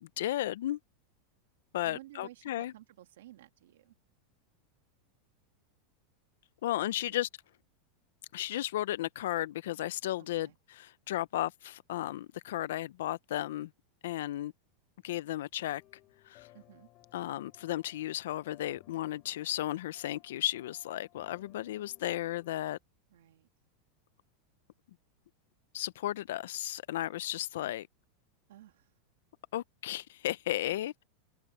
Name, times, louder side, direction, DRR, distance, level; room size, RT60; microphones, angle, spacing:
voice 1, 0.0-0.8 1.7-2.7 6.6-7.3 8.3-13.7 14.0-14.5 15.0-15.8 16.3-16.5 17.1-22.8 25.7-27.9 29.5-31.0, left 14 dB, 70° left, 0.4 m, -34 dB
voice 2, 1.8-3.9 7.0-7.2 10.4-10.6 16.5-16.9 23.1-23.5 28.5-28.9, right 14 dB, 85° right, 1.6 m, -54 dB
sound 1, 15.7-22.7, left 17 dB, 30° left, 4.6 m, -62 dB
supercardioid pair, 180°, 0 cm